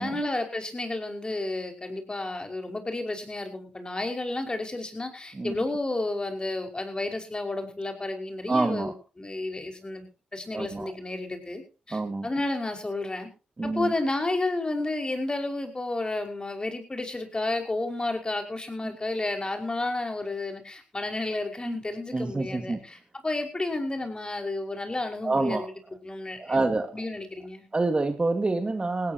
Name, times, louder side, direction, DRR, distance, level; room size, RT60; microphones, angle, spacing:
voice 1, 0.0-10.1 10.3-13.3 13.6-23.0 23.2-25.6 26.0-27.7, left 2 dB, 25° left, 5.5 m, -31 dB
voice 2, 8.5-8.9 10.5-10.9 11.9-12.3 13.6-13.9 18.8-18.9 21.7-21.8 22.1-22.8 25.2-25.7 26.4-26.9 27.7-29.1, right 3 dB, 30° right, 2.1 m, -27 dB
19.0 x 17.0 x 3.0 m
supercardioid pair, 45°, 3 cm